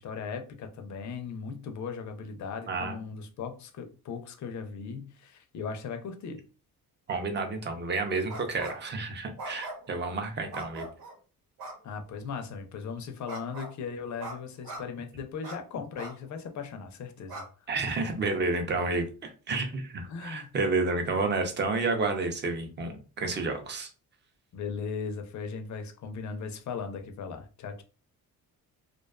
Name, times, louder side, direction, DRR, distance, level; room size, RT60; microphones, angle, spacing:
voice 1, 0.0-6.4 11.8-17.7 20.1-20.5 24.5-27.8, left 5 dB, 50° left, 0.5 m, -38 dB
voice 2, 2.7-3.0 7.1-10.9 17.7-23.9, right 3 dB, 30° right, 0.5 m, -30 dB
sound 1, 8.3-8.9 9.4-10.0 10.5-11.1 11.6-11.8 13.3-13.7 14.2-14.4 14.6-14.8 15.4-15.6 16.0-16.1 16.6-16.7 17.3-17.4, right 2 dB, 75° right, 0.9 m, -40 dB
2.4 x 2.2 x 2.3 m
cardioid pair, 120°, 37 cm